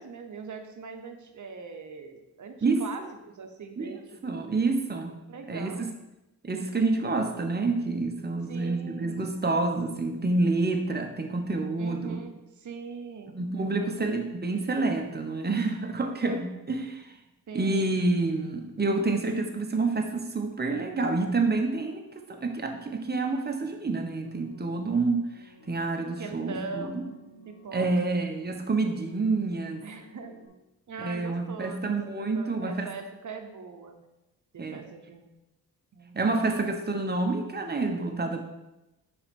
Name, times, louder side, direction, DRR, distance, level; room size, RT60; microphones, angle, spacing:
voice 1, 0.0-4.0 4.3-4.5 5.3-5.9 8.5-9.2 11.8-14.5 17.5-17.9 18.8-19.0 26.2-27.0 27.4-27.9 29.8-30.4 30.9-34.1 34.5-35.3 35.9-36.5, right 5 dB, 50° right, 6 dB, 1.0 m, -41 dB
voice 2, 4.2-5.1 5.5-5.8 6.4-12.2 13.3-17.1 17.5-25.3 25.7-27.0 27.7-29.8 31.0-32.9 34.6-34.8 36.1-38.4, right 3 dB, 25° right, 4 dB, 1.0 m, -28 dB
sound 1, 24.2-30.5, right 1 dB, 30° left, 2.3 m, -55 dB
4.7 x 4.4 x 5.3 m, 0.96 s
cardioid pair, 65°, 39 cm